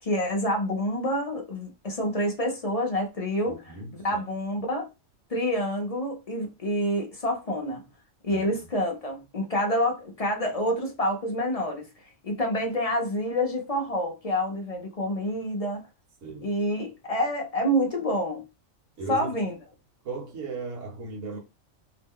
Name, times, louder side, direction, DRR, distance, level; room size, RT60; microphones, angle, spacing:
voice 1, 0.0-3.6 3.9-4.9 5.3-7.9 8.2-11.9 12.2-15.8 16.4-18.4 19.1-19.6, equal, 45° left, 0.5 m, -27 dB
voice 2, 3.4-4.2 8.3-8.7 16.2-16.5 19.0-19.3 20.0-21.4, right 4 dB, 70° right, 1.3 m, -37 dB
2.8 x 2.1 x 3.5 m
omnidirectional pair, 1.4 m